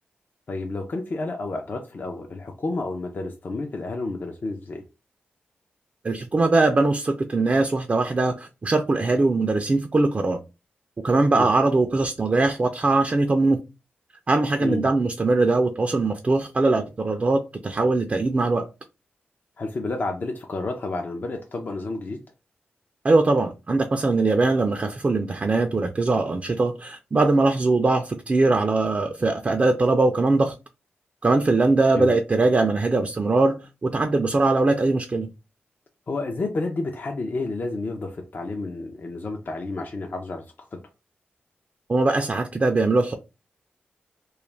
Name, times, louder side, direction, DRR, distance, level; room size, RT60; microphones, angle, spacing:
voice 1, 0.5-4.8 11.3-11.5 14.6-14.9 19.6-22.2 31.9-32.1 36.1-40.4 40.7-40.8, left 2 dB, 50° left, 0.5 m, -30 dB
voice 2, 6.0-10.4 11.0-13.6 14.3-18.7 23.0-30.5 31.2-35.3 41.9-43.2, right 3 dB, 35° right, 0.4 m, -21 dB
2.3 x 2.1 x 3.2 m
cardioid pair, 50°, 4 cm